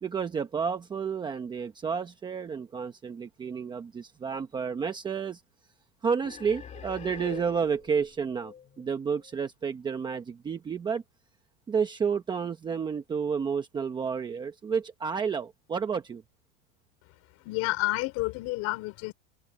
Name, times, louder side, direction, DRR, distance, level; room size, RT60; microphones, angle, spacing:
voice 1, 0.0-5.4 6.0-11.0 11.7-16.2, right 6 dB, 10° right, 1.0 m, -31 dB
sound 1, 6.2-9.4, left 7 dB, 20° left, 2.2 m, -45 dB
voice 2, 17.4-19.1, left 22 dB, 40° left, 5.3 m, -30 dB
supercardioid pair, 170°, 36 cm